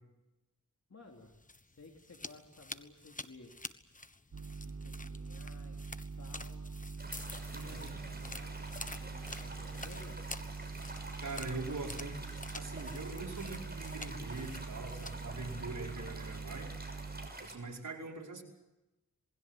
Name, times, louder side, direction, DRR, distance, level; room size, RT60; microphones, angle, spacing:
voice 1, 0.9-1.3 1.6-3.6 4.5-5.8 6.2-6.7 7.5-10.2, left 3 dB, 60° left, 1 dB, 3.3 m, -56 dB
sound 1, 1.2-16.4, left 2 dB, 25° left, 1.3 m, -49 dB
sound 2, 4.3-17.3, right 4 dB, 65° right, 2.1 m, -44 dB
sound 3, 7.0-17.5, right 2 dB, 30° right, 6.6 m, -49 dB
voice 2, 7.5-8.0 11.2-12.2 12.5-16.7 17.4-18.4, right 3 dB, 85° right, -1 dB, 5.7 m, -42 dB
27.5 x 21.0 x 7.7 m, 0.99 s
wide cardioid pair, 65°, 31 cm